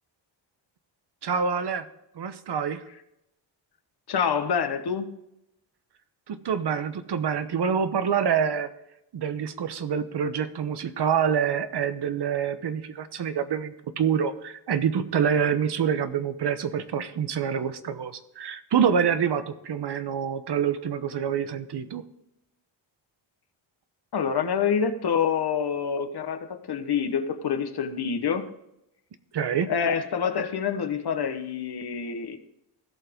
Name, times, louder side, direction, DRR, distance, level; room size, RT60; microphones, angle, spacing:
voice 1, 1.2-1.9 2.2-2.8 6.3-8.7 9.1-22.0 29.3-29.7, right 7 dB, 60° right, 1.0 m, -26 dB
voice 2, 4.1-5.1 24.1-28.5 29.7-32.4, left 7 dB, 60° left, 1.2 m, -27 dB
16.0 x 5.8 x 3.6 m
cardioid pair, 85°, 45 cm